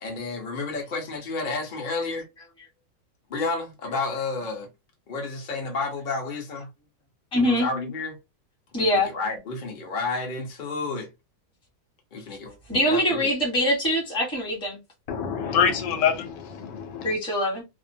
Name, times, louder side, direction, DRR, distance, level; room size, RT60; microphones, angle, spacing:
voice 1, 0.0-2.3 3.3-4.7 5.1-6.7 7.4-8.2 8.8-11.1 12.1-12.6 12.9-13.3, left 3 dB, 45° left, 0.6 m, -31 dB
voice 2, 7.3-7.7 8.7-9.1 12.7-14.8 17.0-17.6, equal, 5° left, 0.7 m, -23 dB
voice 3, 15.1-17.1, left 7 dB, 80° left, 1.2 m, -25 dB
2.8 x 2.1 x 2.6 m
omnidirectional pair, 1.9 m